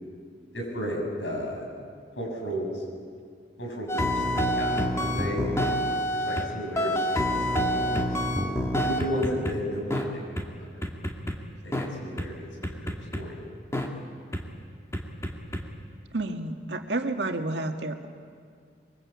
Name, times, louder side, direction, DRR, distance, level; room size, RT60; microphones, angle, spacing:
voice 1, 0.5-1.7 2.2-2.8 3.6-5.5 6.1-8.1 8.9-10.8 11.6-13.4, equal, 90° left, 0 dB, 7.3 m, -34 dB
sound 1, 3.9-6.5 6.8-9.5 9.9-10.0 10.4-10.5 10.8-11.4 11.7-11.9 12.2-12.3 12.6-13.2 13.7-13.9 14.3-14.4 14.9-15.6, equal, 15° left, 2.1 m, -27 dB
voice 2, 16.1-18.1, right 2 dB, 75° right, 4 dB, 1.9 m, -30 dB
23.5 x 23.5 x 8.7 m, 2.1 s
head